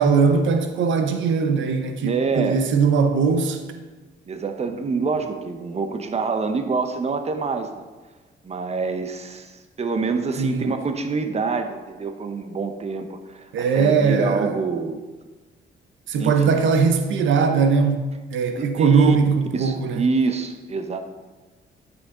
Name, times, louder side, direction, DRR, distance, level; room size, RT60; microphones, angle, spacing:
voice 1, 0.0-3.6 10.4-10.7 13.5-14.5 16.1-20.1, right 5 dB, 75° right, 7 dB, 0.8 m, -20 dB
voice 2, 2.0-2.8 4.3-7.9 8.4-15.0 16.2-16.6 18.5-19.2 19.5-21.0, right 4 dB, 35° right, 7 dB, 0.9 m, -26 dB
11.0 x 6.2 x 3.8 m, 1.3 s
cardioid pair, 90°, 20 cm